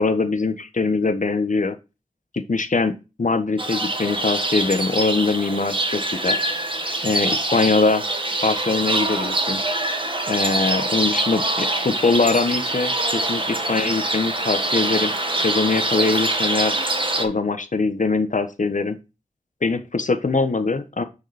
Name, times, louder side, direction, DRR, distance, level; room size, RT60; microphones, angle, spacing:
voice 1, 0.0-1.7 2.3-6.4 7.0-8.0 8.4-9.6 10.3-15.1 15.4-16.7 17.2-19.0 19.6-21.0, left 3 dB, 70° left, 9 dB, 1.3 m, -22 dB
sound 1, 3.6-17.2, right 2 dB, 40° right, 1.8 m, -24 dB
9.6 x 4.9 x 4.3 m, 0.28 s
wide cardioid pair, 55°, 14 cm